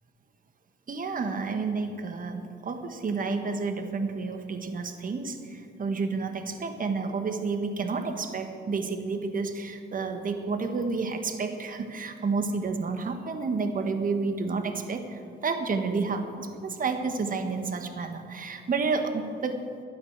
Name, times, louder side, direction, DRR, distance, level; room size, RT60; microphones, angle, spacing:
voice 1, 0.9-19.6, right 4 dB, 45° right, 7 dB, 1.4 m, -30 dB
12.5 x 9.6 x 8.0 m, 2.5 s
cardioid pair, 90°, 20 cm